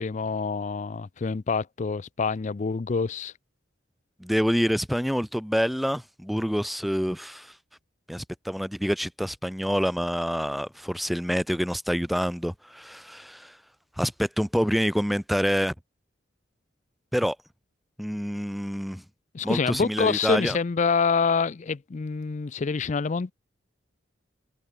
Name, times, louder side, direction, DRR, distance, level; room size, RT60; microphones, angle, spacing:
voice 1, 0.0-3.3 19.3-23.3, left 5 dB, 40° left, 0.4 m, -26 dB
voice 2, 4.2-7.5 8.1-13.6 14.0-15.7 17.1-17.4 18.0-19.0 19.4-20.6, equal, ahead, 1.6 m, -27 dB
head